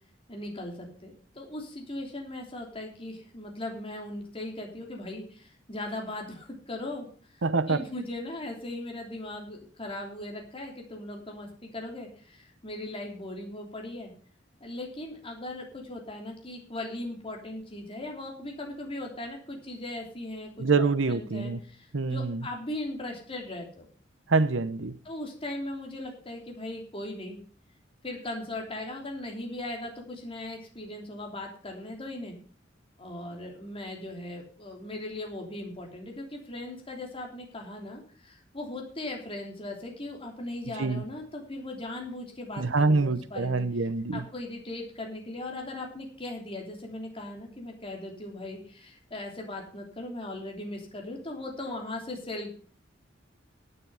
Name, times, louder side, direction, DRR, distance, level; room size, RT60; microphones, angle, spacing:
voice 1, 0.3-14.1 14.6-20.5 20.8-23.9 25.0-27.4 28.0-32.4 33.0-52.6, left 1 dB, 30° left, 3.2 m, -38 dB
voice 2, 7.4-7.8 20.6-21.6 21.9-22.4 24.3-24.9 40.8-41.0 42.6-44.2, right 3 dB, 85° right, 0.9 m, -25 dB
11.5 x 9.8 x 5.7 m
head